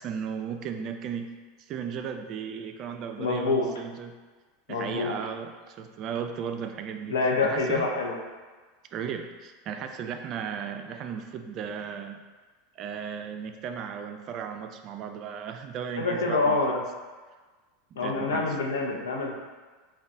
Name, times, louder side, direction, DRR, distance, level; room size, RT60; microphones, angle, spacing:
voice 1, 0.0-1.3 1.7-4.1 4.7-7.9 8.9-12.2 12.8-16.8 17.9-18.6, right 7 dB, 45° right, 6 dB, 0.3 m, -35 dB
voice 2, 3.2-3.7 4.7-5.1 7.1-8.1 16.0-16.8 18.0-19.3, left 3 dB, 90° left, 0 dB, 0.6 m, -26 dB
3.9 x 2.3 x 3.5 m, 1.4 s
hypercardioid pair, 105°, 0 cm